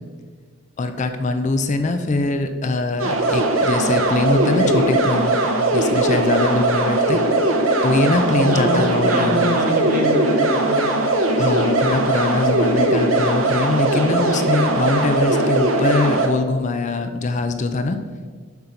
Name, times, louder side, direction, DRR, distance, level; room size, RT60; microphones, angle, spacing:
voice 1, 0.8-5.4 5.7-7.2 7.8-9.6 11.4-18.0, left 3 dB, 35° left, 7 dB, 0.4 m, -22 dB
sound 1, 3.0-16.3, right 2 dB, 80° right, 1.0 m, -19 dB
voice 2, 8.5-10.9, right 1 dB, 40° right, 1 dB, 1.2 m, -24 dB
7.0 x 4.0 x 6.4 m, 1.6 s
head